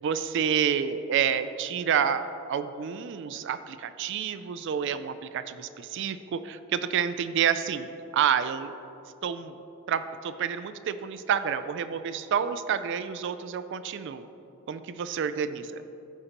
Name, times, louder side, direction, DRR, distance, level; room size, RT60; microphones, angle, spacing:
voice 1, 0.0-7.9 8.1-8.7 9.2-9.5 9.9-14.3 14.7-15.8, right 8 dB, 60° right, 11 dB, 0.3 m, -29 dB
15.0 x 5.0 x 2.9 m, 3.0 s
head